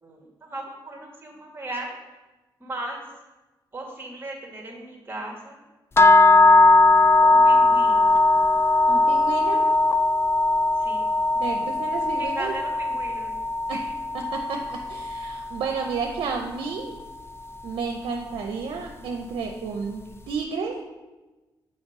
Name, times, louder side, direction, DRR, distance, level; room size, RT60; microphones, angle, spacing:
voice 1, 0.0-2.0 2.6-3.0 3.7-5.6 7.2-8.2 10.8-11.1 12.1-13.3 13.7-13.9, right 2 dB, 25° right, 0 dB, 1.8 m, -37 dB
sound 1, 6.0-16.0, left 2 dB, 30° left, 0.4 m, -19 dB
voice 2, 8.9-9.8 11.4-12.5 13.7-13.8 14.3-17.0 17.6-20.8, right 5 dB, 85° right, 3 dB, 0.6 m, -31 dB
6.5 x 4.3 x 4.8 m, 1.1 s
cardioid pair, 85°, 9 cm